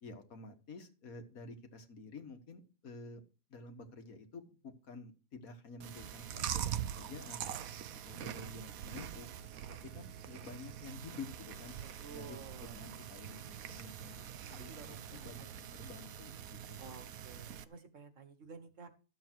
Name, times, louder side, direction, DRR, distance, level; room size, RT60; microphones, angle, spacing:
voice 1, 0.0-3.2 3.5-7.5 8.1-9.3 9.7-11.7 12.1-16.9, left 3 dB, 80° left, 6 dB, 2.0 m, -50 dB
Chewing mastication, 5.8-17.6, right 10 dB, 80° right, 1.2 m, -44 dB
voice 2, 12.0-12.8 14.0-14.4 14.7-15.6 16.8-18.9, right 5 dB, 65° right, 9 dB, 1.7 m, -52 dB
13.0 x 7.6 x 4.6 m, 0.33 s
omnidirectional pair, 1.5 m